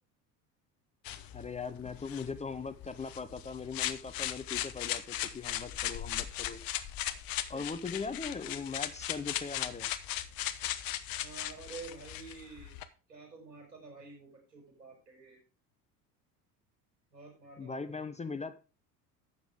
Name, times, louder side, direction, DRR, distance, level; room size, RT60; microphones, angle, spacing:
sound 1, 1.0-12.8, left 12 dB, 45° left, 1.0 m, -38 dB
voice 1, 1.3-6.6 7.5-9.9 17.6-18.6, left 4 dB, 15° left, 10 dB, 0.8 m, -40 dB
voice 2, 11.2-12.8 13.1-15.4 17.1-18.0, right 4 dB, 80° right, 2 dB, 5.3 m, -49 dB
12.0 x 8.2 x 3.5 m, 0.34 s
figure-of-eight pair, 70°, 50 cm